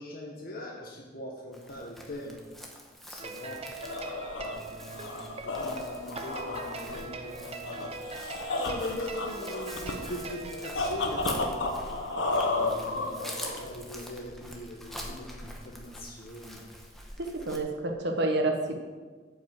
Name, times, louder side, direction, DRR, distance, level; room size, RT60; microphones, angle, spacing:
voice 1, 0.0-2.4 3.1-3.6 4.4-16.7, left 1 dB, 50° left, -1 dB, 1.3 m, -41 dB
Chirp tweet, 1.5-17.6, equal, ahead, 1.2 m, -46 dB
sound 1, 3.2-11.6, right 3 dB, 35° right, 0.7 m, -42 dB
sound 2, 3.6-13.9, left 2 dB, 80° left, 1.1 m, -33 dB
voice 2, 17.2-18.8, right 2 dB, 65° right, 3 dB, 1.2 m, -29 dB
8.7 x 5.7 x 7.6 m, 1.4 s
head